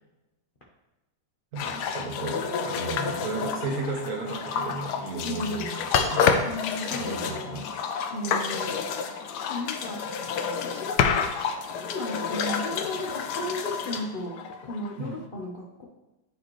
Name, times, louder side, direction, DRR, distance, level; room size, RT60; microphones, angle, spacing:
voice 1, 1.5-6.4 6.9-7.7 15.0-15.2, right 3 dB, 55° right, 0 dB, 1.5 m, -34 dB
sound 1, 1.6-15.1, left 6 dB, 70° left, 1.0 m, -29 dB
voice 2, 5.2-5.7 6.5-7.7 8.1-8.7 9.5-10.0 10.6-11.2 11.8-15.8, left 1 dB, 50° left, -3 dB, 0.6 m, -35 dB
9.2 x 4.4 x 3.1 m, 1.0 s
omnidirectional pair, 2.1 m